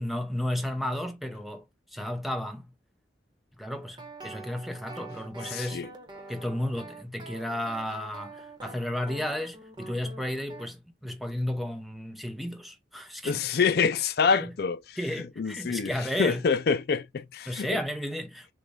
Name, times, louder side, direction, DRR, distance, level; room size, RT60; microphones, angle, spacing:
voice 1, 0.0-2.7 3.6-5.9 6.3-13.6 14.4-14.5 15.0-16.5 17.5-18.5, left 1 dB, ahead, 0.7 m, -33 dB
sound 1, 3.8-10.7, right 3 dB, 25° right, 1.1 m, -45 dB
voice 2, 5.5-5.9 13.2-14.8 15.4-15.9 16.2-17.8, left 5 dB, 55° left, 0.4 m, -26 dB
6.5 x 2.3 x 3.4 m
head